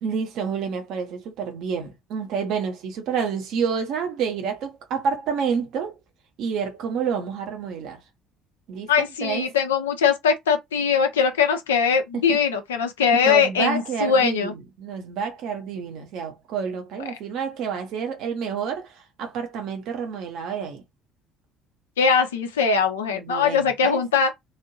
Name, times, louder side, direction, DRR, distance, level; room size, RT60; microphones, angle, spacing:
voice 1, 0.0-6.0 6.4-8.0 8.7-8.9 9.2-9.5 12.1-12.4 13.1-20.8 23.1-24.0, right 6 dB, 55° right, 1.0 m, -29 dB
voice 2, 8.9-14.5 22.0-24.3, left 6 dB, 75° left, 0.7 m, -21 dB
3.2 x 2.6 x 2.7 m
figure-of-eight pair, 55°, 0 cm